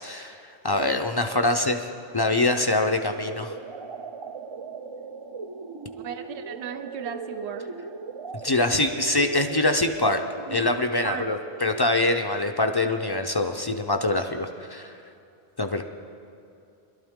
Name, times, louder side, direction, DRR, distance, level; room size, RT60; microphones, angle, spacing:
voice 1, 0.0-1.8 2.1-3.5 8.4-10.2 10.5-14.9 15.6-15.8, left 2 dB, 35° left, 6 dB, 0.4 m, -24 dB
voice 2, 1.3-1.6 6.0-7.7 11.0-11.2, right 8 dB, 80° right, 8 dB, 1.0 m, -36 dB
sound 1, 2.1-12.1, right 4 dB, 50° right, 0.3 m, -39 dB
22.0 x 12.5 x 3.6 m, 2.6 s
omnidirectional pair, 1.1 m